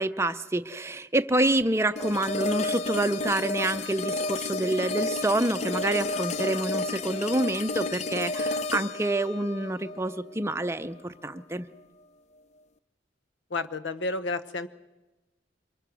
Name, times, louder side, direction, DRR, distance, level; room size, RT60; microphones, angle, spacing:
voice 1, 0.0-11.7, right 1 dB, 15° right, 10 dB, 0.6 m, -27 dB
sound 1, 2.0-11.0, left 2 dB, 40° left, 0.7 m, -31 dB
voice 2, 13.5-14.7, left 3 dB, 90° left, 13 dB, 0.9 m, -31 dB
24.0 x 22.5 x 6.2 m, 1.1 s
head